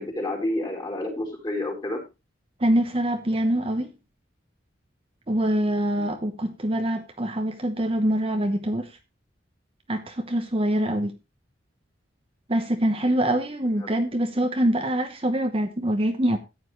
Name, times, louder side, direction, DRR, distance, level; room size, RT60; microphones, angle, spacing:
voice 1, 0.0-2.0 6.0-6.1 13.8-13.9, left 1 dB, 20° left, 0 dB, 3.9 m, -30 dB
voice 2, 2.6-3.9 5.3-8.9 9.9-11.1 12.5-16.4, right 1 dB, 30° right, 5 dB, 1.0 m, -24 dB
14.0 x 9.5 x 3.2 m, 0.26 s
head